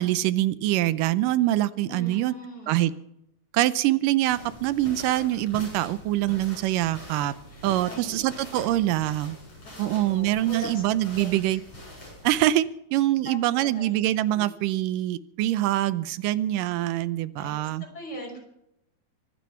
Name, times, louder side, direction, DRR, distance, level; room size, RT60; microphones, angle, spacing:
voice 1, 0.0-2.3 2.7-2.9 3.5-7.3 7.6-9.4 9.8-11.6 12.2-17.8, right 14 dB, 80° right, 16 dB, 2.3 m, -24 dB
voice 2, 1.9-2.8 7.5-8.3 9.6-10.9 11.2-11.6 13.6-14.0 14.3-14.5 17.4-18.4, equal, 30° left, 0 dB, 5.9 m, -41 dB
sound 1, 4.3-12.4, equal, 45° left, 8.9 m, -44 dB
24.5 x 9.6 x 5.8 m, 0.79 s
omnidirectional pair, 3.8 m